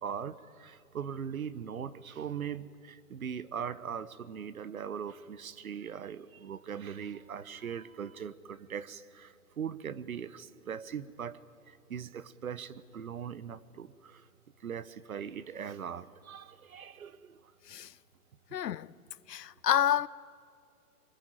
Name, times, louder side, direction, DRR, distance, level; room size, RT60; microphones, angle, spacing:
voice 1, 0.0-11.4 11.7-14.2 14.6-17.4, right 7 dB, 60° right, 1.1 m, -40 dB
voice 2, 18.5-18.9 19.3-20.1, left 10 dB, 90° left, 0.8 m, -28 dB
26.0 x 23.0 x 9.1 m
hypercardioid pair, 175°, 47 cm